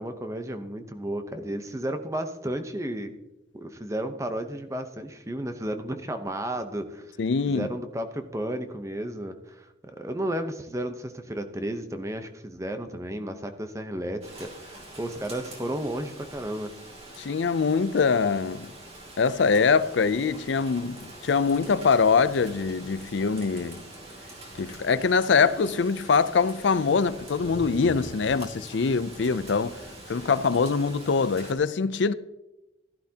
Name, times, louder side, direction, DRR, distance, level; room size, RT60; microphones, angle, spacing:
voice 1, 0.0-3.1 3.5-7.1 7.5-9.7 9.9-16.7, right 1 dB, 15° right, 0.8 m, -33 dB
voice 2, 7.2-7.7 17.2-18.7 19.2-23.8 24.6-29.8 30.1-32.1, left 5 dB, 75° left, 0.5 m, -23 dB
Rain, 14.2-31.5, right 1 dB, 35° right, 2.7 m, -44 dB
14.0 x 11.5 x 2.9 m
head